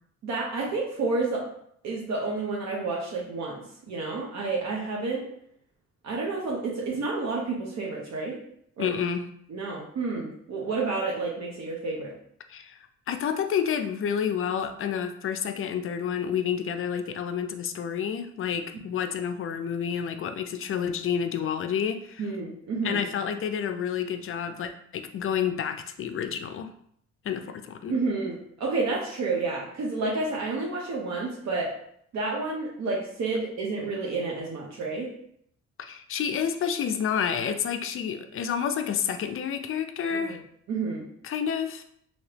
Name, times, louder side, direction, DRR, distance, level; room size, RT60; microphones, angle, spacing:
voice 1, 0.2-1.4 1.8-5.2 6.0-8.4 8.8-8.9 9.5-12.1 22.2-23.0 27.9-31.7 32.1-35.1 40.1-40.4 40.7-41.1, right 3 dB, 65° right, -3 dB, 0.8 m, -30 dB
voice 2, 8.8-9.3 12.5-12.8 13.1-22.3 22.8-26.7 27.2-28.0 35.8-40.4 41.2-41.8, left 8 dB, 45° left, 8 dB, 0.4 m, -29 dB
3.3 x 2.8 x 2.8 m, 0.69 s
cardioid pair, 90°, 30 cm